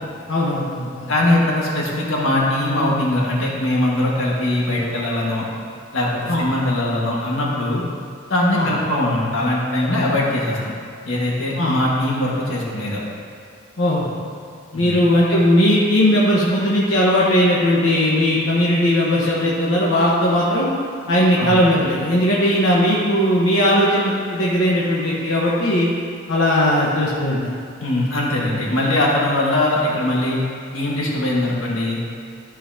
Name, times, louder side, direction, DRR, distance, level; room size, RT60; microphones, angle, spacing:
voice 1, 0.3-1.1 6.3-6.4 8.5-8.7 11.6-11.8 13.8-14.1 14.7-20.7 21.1-25.9 26.3-27.5, equal, 65° left, -6 dB, 1.1 m, -18 dB
voice 2, 1.1-5.4 5.9-7.8 8.3-10.7 11.1-13.0 14.7-15.0 21.4-21.5 27.8-30.4 30.7-32.0, left 1 dB, 90° left, -4 dB, 1.7 m, -21 dB
13.0 x 5.5 x 2.8 m, 2.2 s
head